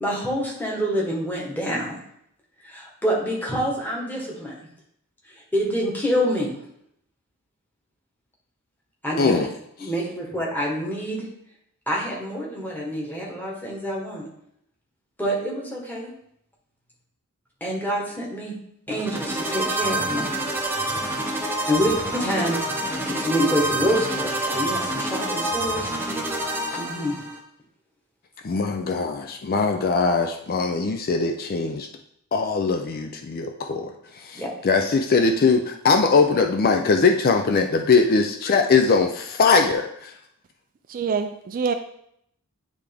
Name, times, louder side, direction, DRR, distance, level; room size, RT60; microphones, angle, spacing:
voice 1, 0.0-2.0 2.6-4.7 5.5-6.5 9.0-9.5 9.8-11.3 11.9-14.3 15.2-16.1 17.6-18.5 18.9-20.4 21.7-25.9 26.7-27.2 34.3-34.5, equal, 10° left, -3 dB, 1.4 m, -26 dB
voice 2, 9.2-9.5 9.8-9.9 28.4-31.9 32.3-40.1, left 4 dB, 40° left, 5 dB, 0.4 m, -21 dB
sound 1, 18.9-27.4, right 1 dB, 10° right, 0.7 m, -27 dB
voice 3, 40.9-41.7, right 5 dB, 40° right, 7 dB, 0.3 m, -25 dB
9.4 x 3.4 x 3.5 m, 0.72 s
head